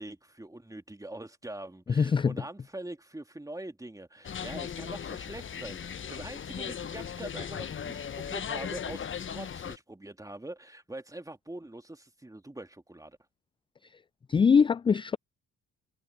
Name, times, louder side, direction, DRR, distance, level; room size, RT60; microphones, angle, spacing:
voice 1, 0.0-13.2, right 1 dB, 10° right, 2.5 m, -43 dB
voice 2, 1.9-2.4 14.3-15.2, left 6 dB, 15° left, 0.3 m, -22 dB
sound 1, 4.2-9.8, left 7 dB, 35° left, 1.1 m, -37 dB
hypercardioid pair, 55°, 33 cm